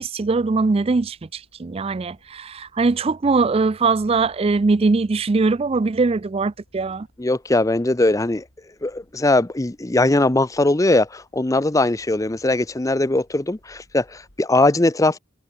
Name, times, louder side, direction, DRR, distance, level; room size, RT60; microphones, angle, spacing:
voice 1, 0.0-7.1, right 3 dB, 30° right, 0.4 m, -21 dB
sound 1, 1.0-14.4, equal, 75° left, 7.5 m, -59 dB
voice 2, 7.2-8.4 8.8-15.2, left 2 dB, 15° left, 0.6 m, -20 dB
head